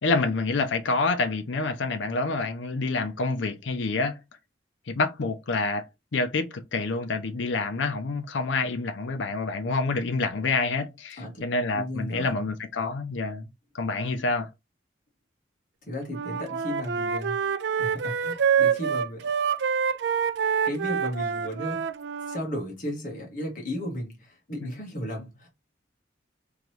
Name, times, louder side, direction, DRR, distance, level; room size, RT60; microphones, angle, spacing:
voice 1, 0.0-4.2 4.9-5.8 6.1-13.5 13.7-14.5 24.6-24.7, left 3 dB, 75° left, 0.6 m, -27 dB
voice 2, 11.2-11.5 11.7-12.4 15.9-17.4 17.8-19.3 20.6-21.8 22.3-25.5, equal, 45° left, 1.4 m, -34 dB
Wind instrument woodwind instrument, 16.1-22.4, right 7 dB, 60° right, 0.3 m, -26 dB
3.8 x 2.9 x 3.1 m
head